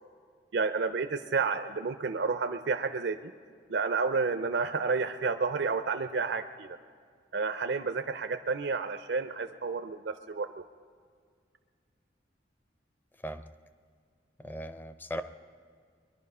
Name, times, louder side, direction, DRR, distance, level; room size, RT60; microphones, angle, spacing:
voice 1, 0.5-3.3 3.7-6.8 7.3-10.6, right 4 dB, 70° right, 8 dB, 0.5 m, -30 dB
voice 2, 14.4-15.2, equal, 10° left, 10 dB, 0.5 m, -38 dB
22.5 x 11.0 x 5.5 m, 2.1 s
head